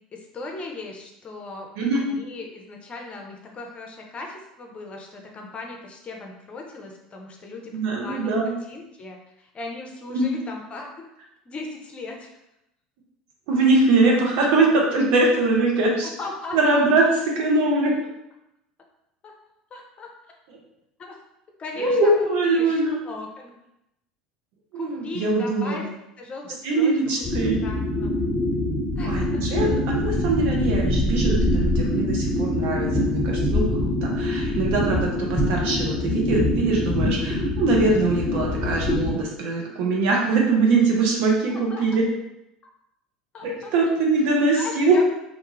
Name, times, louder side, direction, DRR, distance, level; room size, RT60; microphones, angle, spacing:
voice 1, 0.1-1.7 1.9-11.1 11.5-12.3 16.0-16.8 19.2-19.3 19.7-20.1 21.0-21.2 21.6-22.8 23.0-23.5 24.7-25.9 26.2-27.3 27.6-28.3 29.0-29.7 41.5-41.9 43.3-43.9 44.4-45.1, left 3 dB, 30° left, 1 dB, 0.6 m, -38 dB
voice 2, 1.8-2.1 7.7-8.5 10.1-10.3 13.5-16.1 16.5-17.9 21.8-23.0 24.7-25.8 26.6-27.6 29.0-42.0 43.4-45.0, right 3 dB, 60° right, -1 dB, 0.7 m, -22 dB
sound 1, 27.2-39.1, left 1 dB, ahead, 1.2 m, -24 dB
2.5 x 2.3 x 3.0 m, 0.85 s
figure-of-eight pair, 70°, 4 cm